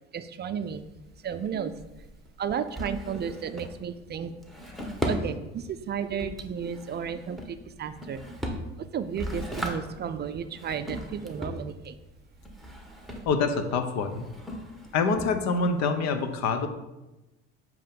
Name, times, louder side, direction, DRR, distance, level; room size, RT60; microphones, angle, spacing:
voice 1, 0.1-0.8 1.2-1.7 2.4-4.3 5.1-8.2 8.9-12.0, right 7 dB, 35° right, 11 dB, 0.4 m, -33 dB
Drawer open or close, 0.6-15.8, equal, ahead, 1.2 m, -38 dB
voice 2, 13.3-14.3 14.9-16.7, left 4 dB, 65° left, 9 dB, 0.9 m, -26 dB
7.5 x 3.1 x 5.2 m, 1.0 s
supercardioid pair, 80°, 29 cm